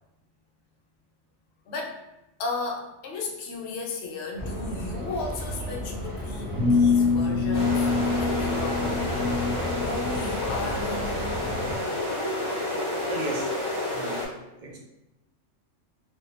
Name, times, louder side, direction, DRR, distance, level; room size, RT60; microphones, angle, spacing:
voice 1, 1.7-2.0 2.4-9.0 9.8-11.0, left 3 dB, 65° left, 0 dB, 0.8 m, -34 dB
sound 1, 4.4-11.8, left 1 dB, 10° right, 0.7 m, -33 dB
sound 2, 6.6-9.7, left 4 dB, 90° right, 1.0 m, -24 dB
sound 3, 7.5-14.3, left 1 dB, 35° left, 0.4 m, -30 dB
voice 2, 13.0-13.5 13.9-14.2 14.6-14.8, right 1 dB, 55° right, -2 dB, 0.6 m, -34 dB
2.2 x 2.2 x 2.9 m, 0.93 s
omnidirectional pair, 1.3 m